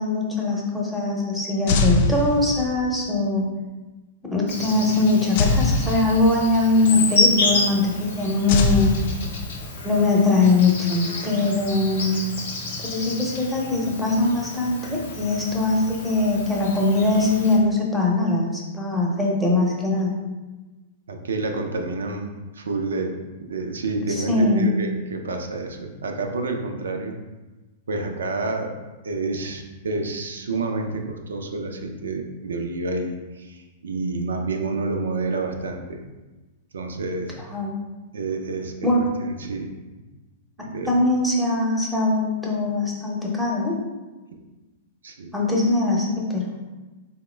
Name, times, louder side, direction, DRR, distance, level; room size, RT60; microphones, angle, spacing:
voice 1, 0.0-3.5 4.3-9.0 9.8-12.5 12.8-20.2 24.1-24.8 37.5-37.8 38.8-39.0 40.9-43.7 45.3-46.4, left 2 dB, ahead, -3 dB, 0.7 m, -21 dB
sound 1, 1.7-2.9 5.4-6.6 8.5-9.8, left 3 dB, 55° left, 0.3 m, -23 dB
Insect, 4.5-17.6, left 2 dB, 70° left, 0.7 m, -30 dB
voice 2, 21.1-27.2 27.9-28.8 29.0-36.0 36.7-37.4 38.1-38.9 39.2-39.7 40.6-40.9 45.0-45.3, right 3 dB, 80° right, 4 dB, 0.4 m, -29 dB
3.5 x 2.1 x 3.2 m, 1.2 s
hypercardioid pair, 110°, 0 cm